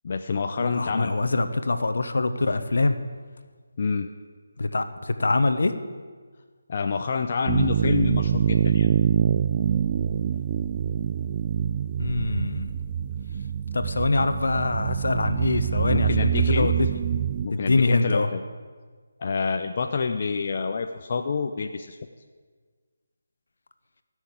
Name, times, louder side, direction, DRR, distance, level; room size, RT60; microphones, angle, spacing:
voice 1, 0.0-1.1 3.8-4.1 6.7-8.9 15.9-16.7 17.4-18.4 19.2-22.0, left 5 dB, 45° left, 5 dB, 0.7 m, -27 dB
voice 2, 0.6-2.9 4.6-5.7 12.0-12.7 13.7-16.9 17.5-18.3, left 3 dB, 70° left, 9 dB, 1.1 m, -24 dB
sound 1, 7.5-17.5, right 9 dB, 30° right, 0.3 m, -25 dB
15.0 x 6.4 x 8.7 m, 1.5 s
figure-of-eight pair, 160°, 0 cm